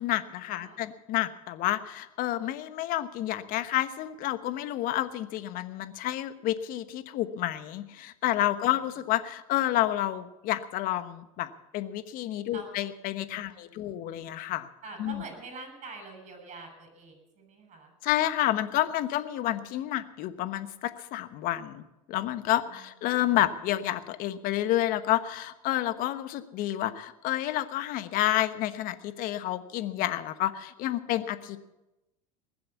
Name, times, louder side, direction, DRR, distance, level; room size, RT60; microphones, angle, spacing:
voice 1, 0.0-14.7 15.0-15.2 18.0-31.7, left 14 dB, 55° left, 12 dB, 1.2 m, -29 dB
voice 2, 13.3-14.3 14.8-17.9 22.7-22.8, right 3 dB, 40° right, 5 dB, 7.0 m, -45 dB
20.5 x 7.7 x 8.3 m, 0.96 s
hypercardioid pair, 95°, 17 cm